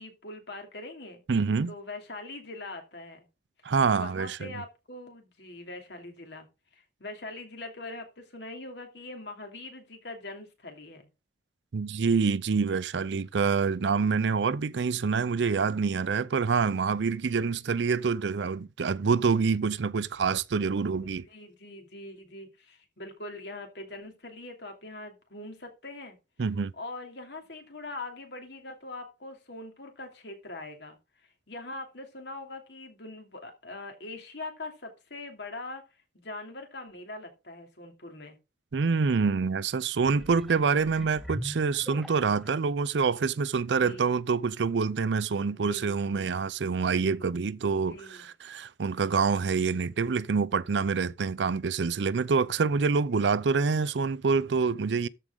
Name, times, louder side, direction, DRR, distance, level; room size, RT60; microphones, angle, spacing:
voice 1, 0.0-1.2 1.7-3.3 3.6-11.1 21.2-26.2 26.8-35.8 36.1-38.4 43.8-44.1 45.5-46.3 47.9-48.2, left 2 dB, 75° left, 2.9 m, -42 dB
voice 2, 1.3-1.7 3.6-4.5 11.7-21.2 26.4-26.7 38.7-55.1, right 5 dB, 80° right, 0.5 m, -26 dB
sound 1, 40.0-42.6 43.2-43.3, equal, ahead, 0.6 m, -42 dB
13.5 x 4.8 x 3.9 m
head